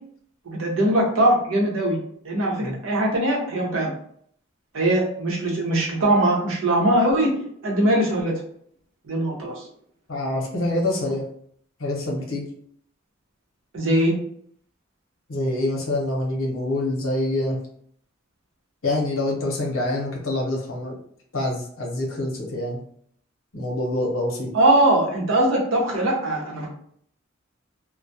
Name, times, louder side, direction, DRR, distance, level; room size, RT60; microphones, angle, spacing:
voice 1, 0.5-2.0 2.2-3.9 4.7-8.4 9.1-9.7 13.7-14.2 24.5-26.7, right 1 dB, 75° right, -2 dB, 0.7 m, -21 dB
voice 2, 10.1-11.3 11.8-12.5 15.3-17.6 18.8-20.9 21.3-22.8 23.5-24.5, left 1 dB, 80° left, -1 dB, 0.7 m, -26 dB
2.2 x 2.1 x 2.7 m, 0.64 s
head